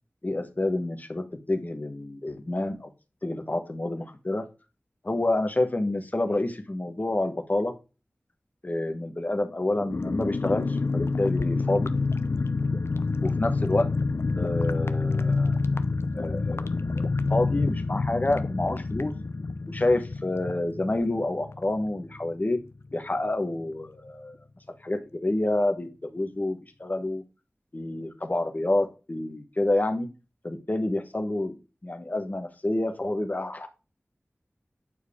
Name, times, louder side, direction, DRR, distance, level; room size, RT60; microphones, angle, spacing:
voice 1, 0.2-2.9 3.2-4.4 5.0-7.7 8.6-11.9 13.2-13.9 14.4-15.6 16.1-19.1 19.7-22.6 22.9-24.3 24.8-27.2 27.7-30.1 30.4-33.7, left 2 dB, 40° left, 6 dB, 1.2 m, -28 dB
sound 1, 9.9-22.3 22.5-22.6 22.9-23.2, left 3 dB, 65° left, 0.6 m, -28 dB
8.6 x 4.6 x 3.5 m, 0.32 s
wide cardioid pair, 65°, 5 cm